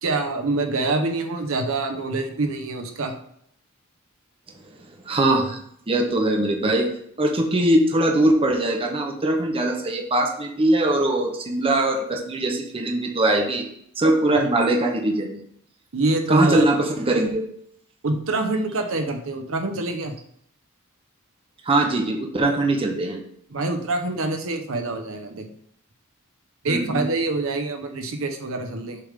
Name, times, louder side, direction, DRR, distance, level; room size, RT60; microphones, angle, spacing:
voice 1, 0.0-3.1 15.9-16.8 18.0-20.1 23.5-25.5 26.6-29.0, right 2 dB, 65° right, 5 dB, 0.8 m, -25 dB
voice 2, 5.1-5.6 5.9-6.9 7.2-13.7 14.0-15.4 16.3-17.4 21.7-23.2 26.7-27.1, right 1 dB, 25° right, 2 dB, 0.7 m, -21 dB
6.7 x 3.4 x 5.0 m, 0.68 s
head